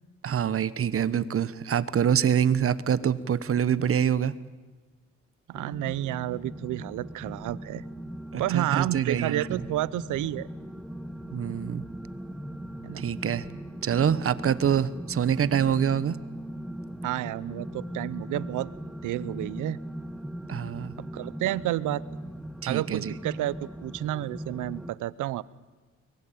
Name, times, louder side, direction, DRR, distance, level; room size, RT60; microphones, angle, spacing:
voice 1, 0.2-4.3 8.3-9.6 11.3-11.8 13.0-13.4 13.8-16.2 20.5-20.9 22.6-23.1, right 8 dB, 45° right, 17 dB, 1.1 m, -25 dB
sound 1, 5.5-24.9, equal, ahead, 1.3 m, -39 dB
voice 2, 5.5-7.8 8.4-10.5 12.8-13.1 17.0-18.7 19.0-19.8 21.0-22.0 22.7-23.6 23.8-25.4, right 15 dB, 85° right, 20 dB, 0.8 m, -30 dB
24.0 x 22.0 x 8.7 m, 1.3 s
cardioid pair, 90°, 30 cm